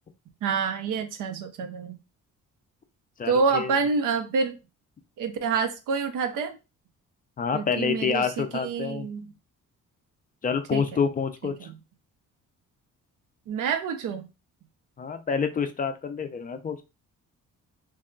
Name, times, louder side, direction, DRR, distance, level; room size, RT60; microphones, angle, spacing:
voice 1, 0.4-2.0 3.3-4.6 5.2-6.6 7.5-9.3 10.7-10.8 11.6-11.7 13.5-14.3, right 5 dB, 75° right, 0.6 m, -27 dB
voice 2, 3.2-3.7 7.4-9.1 10.4-11.7 15.0-16.8, left 6 dB, 25° left, 0.4 m, -28 dB
2.6 x 2.2 x 3.7 m
cardioid pair, 125°, 31 cm